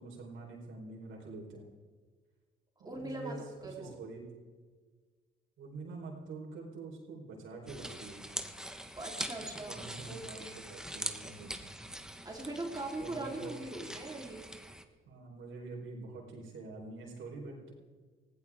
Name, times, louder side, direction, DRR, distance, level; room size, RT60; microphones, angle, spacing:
voice 1, 0.0-1.6 2.8-4.2 5.6-8.3 9.7-11.8 13.0-13.8 15.1-17.7, right 3 dB, 80° right, 0 dB, 4.3 m, -46 dB
voice 2, 2.9-3.3 3.6-4.0 9.0-9.8 10.1-10.6 12.2-14.4, right 2 dB, 20° right, -2 dB, 3.6 m, -41 dB
sound 1, 7.7-14.8, right 1 dB, 5° right, 1.2 m, -43 dB
19.5 x 16.0 x 3.6 m, 1.5 s
cardioid pair, 90°, 20 cm